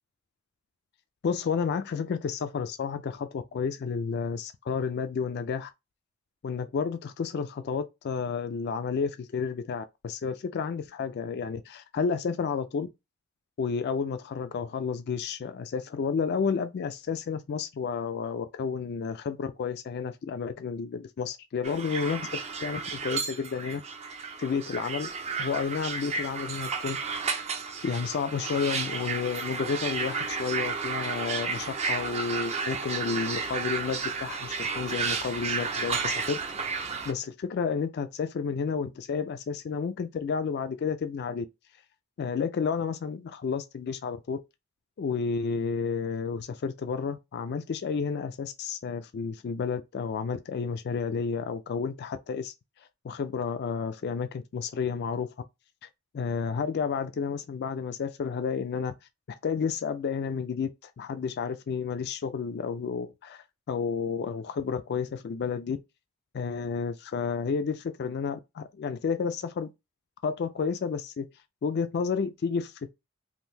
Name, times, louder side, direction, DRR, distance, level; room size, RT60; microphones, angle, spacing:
voice 1, 1.2-5.7 6.4-12.9 13.6-23.8 24.4-25.1 25.4-27.1 27.8-36.4 37.1-41.5 42.2-44.4 45.0-52.5 53.0-55.3 56.1-58.9 59.4-65.8 66.3-69.7 70.2-71.3 71.6-72.9, left 5 dB, 45° left, 0.3 m, -31 dB
sound 1, 21.6-37.1, right 5 dB, 30° right, 0.4 m, -32 dB
3.6 x 2.6 x 2.6 m
head